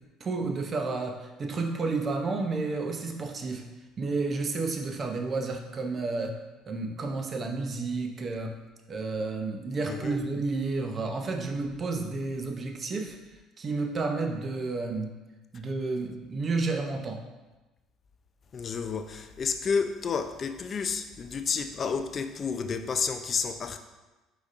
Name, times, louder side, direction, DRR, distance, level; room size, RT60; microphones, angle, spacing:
voice 1, 0.2-3.7 4.0-6.4 6.7-8.6 8.9-13.2 13.6-15.1 15.5-17.2, right 3 dB, 35° right, 4 dB, 0.5 m, -31 dB
voice 2, 9.9-10.2 18.5-23.8, left 5 dB, 40° left, 8 dB, 0.3 m, -30 dB
5.0 x 3.9 x 2.5 m, 1.1 s
cardioid pair, 100°, 0 cm